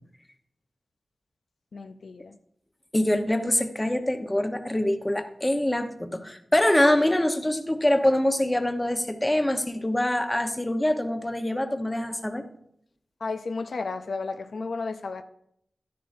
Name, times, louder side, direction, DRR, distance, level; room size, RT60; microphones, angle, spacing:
voice 1, 1.7-2.4 13.2-15.2, left 4 dB, 80° left, 0.5 m, -33 dB
voice 2, 2.9-12.4, left 1 dB, 15° left, 0.9 m, -24 dB
12.0 x 10.0 x 2.6 m
wide cardioid pair, 85°, 0 cm